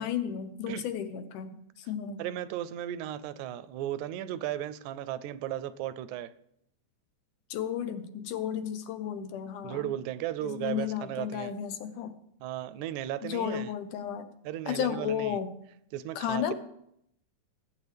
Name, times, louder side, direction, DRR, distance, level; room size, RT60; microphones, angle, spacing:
voice 1, 0.0-2.2 7.5-9.9 10.4-12.2 13.2-14.3 14.7-15.5 16.2-16.5, left 9 dB, 80° left, 9 dB, 2.4 m, -33 dB
voice 2, 2.2-6.3 9.6-11.5 12.4-13.7 14.4-15.4 15.9-16.5, right 12 dB, 80° right, 14 dB, 1.9 m, -35 dB
20.5 x 9.2 x 3.4 m, 0.76 s
omnidirectional pair, 3.5 m